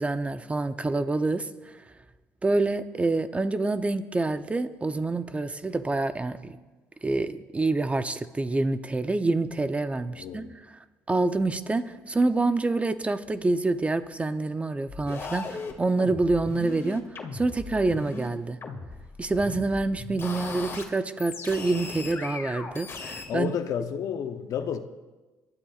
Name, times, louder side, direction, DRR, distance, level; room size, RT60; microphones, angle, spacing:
voice 1, 0.0-1.5 2.4-6.6 7.0-10.5 11.1-18.6 19.2-23.5, right 2 dB, 20° right, 0.7 m, -27 dB
voice 2, 10.1-10.5 23.3-24.8, left 8 dB, 65° left, 0.9 m, -31 dB
sound 1, 14.9-18.3 18.6-20.8 21.2-23.3, left 4 dB, 40° left, 2.1 m, -38 dB
22.5 x 13.0 x 2.5 m
supercardioid pair, 75°, 6 cm